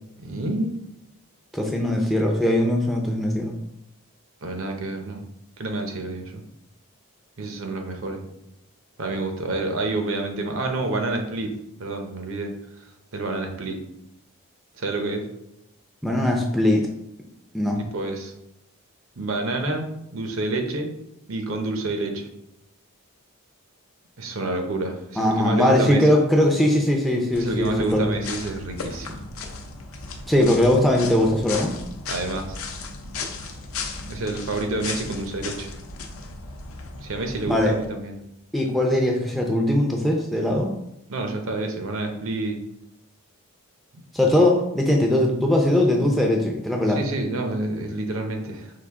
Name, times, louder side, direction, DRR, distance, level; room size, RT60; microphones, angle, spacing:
voice 1, 0.2-0.8 4.4-5.3 5.6-6.4 7.4-8.2 9.0-11.5 11.8-12.5 13.1-13.8 14.7-15.3 17.9-18.3 19.2-20.9 21.3-22.3 24.2-26.1 27.4-29.2 32.1-32.6 34.1-35.7 37.0-38.2 41.1-42.6 46.9-48.7, right 2 dB, 65° right, 4 dB, 0.7 m, -28 dB
voice 2, 1.5-3.5 16.0-16.9 17.5-17.8 25.2-28.1 30.3-31.8 37.5-37.7 38.5-40.7 44.1-47.0, left 1 dB, ahead, 0 dB, 0.4 m, -20 dB
sound 1, 27.3-37.8, left 3 dB, 70° left, 0.6 m, -36 dB
4.9 x 2.5 x 3.6 m, 0.83 s
head